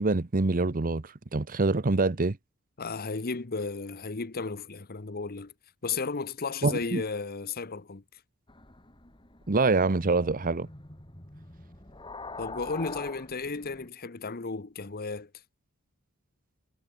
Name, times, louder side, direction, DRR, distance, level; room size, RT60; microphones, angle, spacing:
voice 1, 0.0-2.4 6.6-7.0 9.5-10.7, right 3 dB, 40° right, 0.9 m, -25 dB
voice 2, 2.8-5.5 5.8-8.0 12.4-15.3, left 4 dB, 45° left, 1.0 m, -34 dB
sound 1, 8.5-13.9, left 3 dB, 25° left, 3.4 m, -45 dB
head